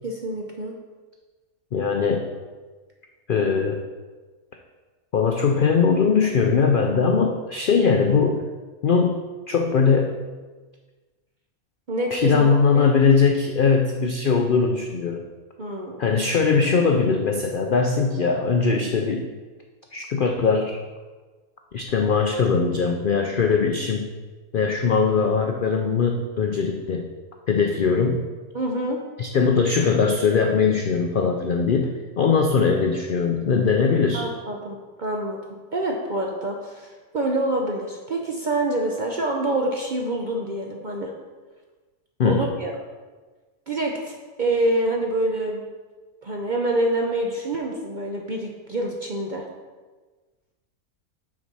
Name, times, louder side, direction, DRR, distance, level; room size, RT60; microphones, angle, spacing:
voice 1, 0.0-0.7 11.9-12.5 12.7-12.9 15.6-16.0 28.5-29.0 34.1-41.1 42.2-42.7 43.7-45.7 46.2-49.4, right 1 dB, 55° right, 0 dB, 0.5 m, -26 dB
voice 2, 1.7-2.3 3.3-3.8 5.1-8.4 8.8-9.2 9.5-10.2 12.1-15.3 16.0-19.3 19.9-20.8 21.7-24.1 24.5-27.1 27.5-28.3 29.2-34.2 42.2-42.4, left 5 dB, 75° left, 3 dB, 0.4 m, -20 dB
6.3 x 4.2 x 6.0 m, 1.3 s
omnidirectional pair, 1.5 m